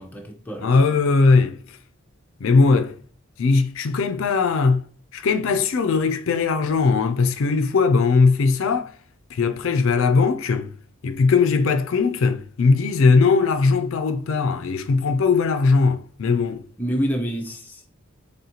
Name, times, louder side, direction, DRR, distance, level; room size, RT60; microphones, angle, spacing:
voice 1, 0.0-1.0 16.8-17.9, equal, 10° left, 0.5 m, -28 dB
voice 2, 0.6-1.8 2.4-3.0 3.4-4.8 5.1-8.9 9.3-10.7 11.0-16.6, left 4 dB, 60° left, 0.4 m, -19 dB
3.9 x 3.4 x 2.8 m
head